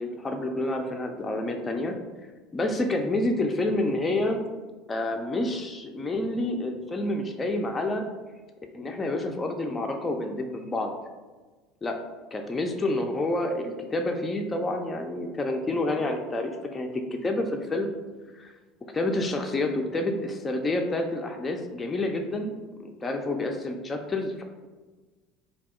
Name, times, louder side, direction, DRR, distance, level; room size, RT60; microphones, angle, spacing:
voice 1, 0.0-2.0 2.5-4.4 4.9-8.1 8.7-10.9 11.8-12.0 12.3-16.9 17.2-18.0 18.4-18.5 18.9-24.4, left 2 dB, 20° left, 3 dB, 0.4 m, -28 dB
2.7 x 2.3 x 3.5 m, 1.3 s
figure-of-eight pair, 70°, 0 cm